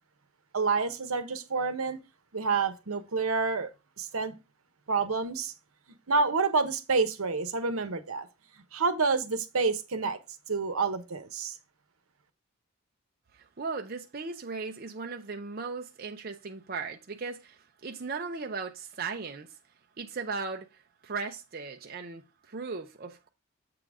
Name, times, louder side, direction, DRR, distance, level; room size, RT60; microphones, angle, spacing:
voice 1, 0.5-2.0 2.3-3.7 4.0-4.3 4.9-5.5 6.1-8.3 8.7-10.2 10.5-11.6, right 4 dB, 80° right, 1.0 m, -28 dB
voice 2, 13.3-19.6 20.0-23.3, right 4 dB, 45° right, 0.6 m, -37 dB
7.7 x 3.9 x 4.7 m
head